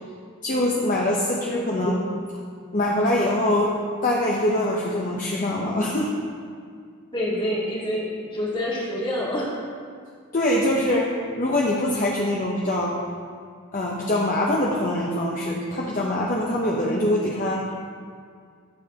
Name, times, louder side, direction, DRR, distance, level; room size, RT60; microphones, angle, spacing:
voice 1, 0.4-2.0 2.7-3.7 4.0-6.1 10.3-13.0 13.7-17.6, left 1 dB, 40° left, -3 dB, 0.8 m, -23 dB
voice 2, 7.1-9.5, left 1 dB, 25° left, -5 dB, 1.7 m, -27 dB
14.0 x 7.2 x 2.9 m, 2.1 s
head